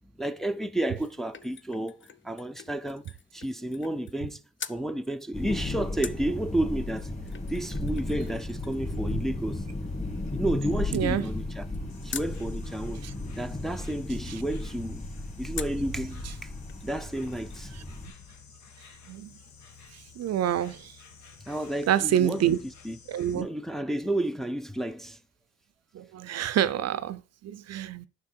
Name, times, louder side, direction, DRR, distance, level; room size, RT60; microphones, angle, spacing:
voice 1, 0.2-3.1 3.3-4.4 4.7-7.1 7.5-9.6 10.3-11.7 12.0-13.0 13.4-15.0 15.4-16.5 16.8-17.7 21.5-23.0 23.3-25.2, right 1 dB, ahead, 0.6 m, -31 dB
sound 1, 0.7-4.3 4.6-4.8 6.0-12.4 15.5-15.9 16.4-16.5 16.7-17.7 18.0-18.1, left 8 dB, 40° left, 0.6 m, -45 dB
sound 2, 5.3-18.1, left 2 dB, 25° left, 2.6 m, -34 dB
voice 2, 10.9-11.3 13.0-13.1 19.1-19.3 20.2-20.9 21.9-22.6 23.1-23.5 25.9-28.1, right 11 dB, 60° right, 0.6 m, -27 dB
Insect, 11.9-23.4, left 5 dB, 70° left, 1.6 m, -52 dB
9.6 x 5.9 x 4.5 m
cardioid pair, 90°, 30 cm